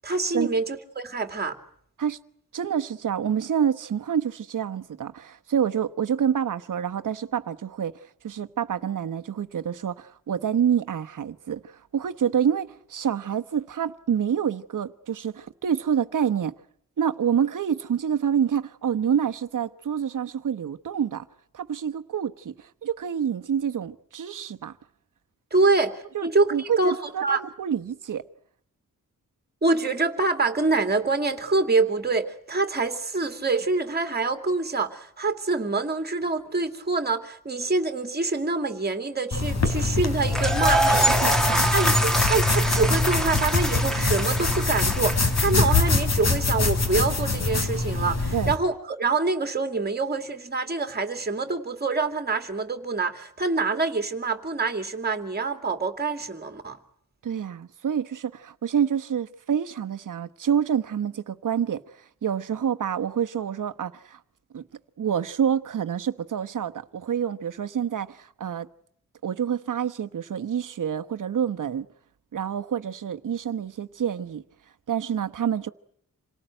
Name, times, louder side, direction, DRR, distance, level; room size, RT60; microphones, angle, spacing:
voice 1, 0.0-1.6 25.5-27.0 27.2-27.4 29.6-41.2 41.7-56.8, right 3 dB, 30° right, 2.5 m, -26 dB
voice 2, 2.5-7.9 8.2-16.5 17.0-21.2 21.5-24.7 26.1-28.2 41.2-41.6 48.3-48.5 57.2-61.8 62.2-64.2 64.5-64.6 65.0-68.7 69.2-71.9 72.3-74.4 74.9-75.7, right 8 dB, 70° right, 1.1 m, -27 dB
sound 1, 39.3-48.6, left 3 dB, 55° left, 4.0 m, -24 dB
sound 2, 40.2-46.2, right 1 dB, ahead, 2.2 m, -26 dB
27.5 x 18.5 x 9.0 m
wide cardioid pair, 125°, 33 cm